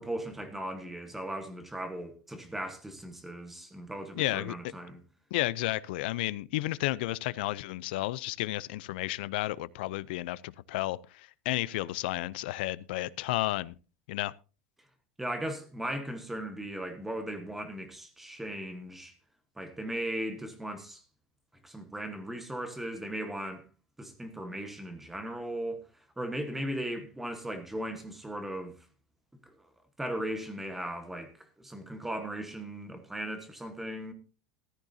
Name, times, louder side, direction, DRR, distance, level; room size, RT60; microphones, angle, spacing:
voice 1, 0.0-5.0 15.2-19.1 19.6-21.0 21.6-23.6 24.0-25.8 26.2-28.8 29.5-29.6 30.0-34.1, right 1 dB, 5° right, 1.2 m, -37 dB
voice 2, 4.2-4.5 5.3-13.7 14.1-14.3, left 17 dB, 65° left, 0.5 m, -32 dB
14.5 x 13.0 x 2.7 m
supercardioid pair, 175°, 6 cm